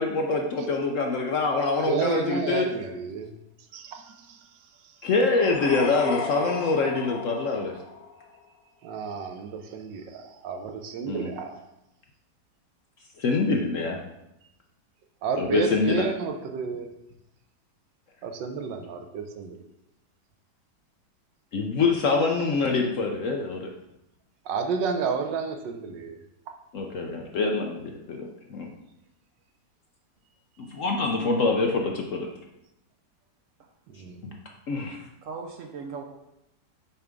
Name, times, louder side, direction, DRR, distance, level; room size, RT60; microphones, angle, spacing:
voice 1, 0.0-2.6 5.0-7.7 11.1-11.3 13.2-14.0 15.4-16.0 21.5-23.7 26.7-28.7 30.6-32.3 34.7-35.0, left 3 dB, 60° left, 1 dB, 0.8 m, -25 dB
voice 2, 1.8-3.3 3.7-4.5 8.8-11.6 15.2-16.9 18.2-19.6 24.4-26.2 30.6-30.8 33.9-34.2, right 5 dB, 90° right, 5 dB, 1.5 m, -31 dB
sound 1, 5.3-8.4, left 6 dB, 80° left, 1.4 m, -33 dB
voice 3, 31.0-31.4 33.6-33.7 35.2-36.0, right 5 dB, 60° right, 4 dB, 0.8 m, -39 dB
7.1 x 3.4 x 5.1 m, 0.86 s
omnidirectional pair, 1.9 m